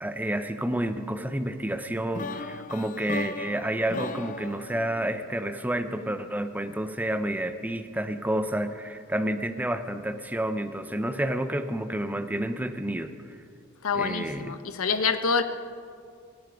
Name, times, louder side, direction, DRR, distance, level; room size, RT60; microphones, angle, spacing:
voice 1, 0.0-13.4 13.9-14.5, right 1 dB, 5° right, 10 dB, 0.6 m, -30 dB
sound 1, 2.1-6.1, left 3 dB, 35° left, 0.5 m, -38 dB
voice 2, 13.8-15.4, left 5 dB, 70° left, 9 dB, 0.9 m, -26 dB
23.5 x 11.0 x 5.1 m, 2.3 s
head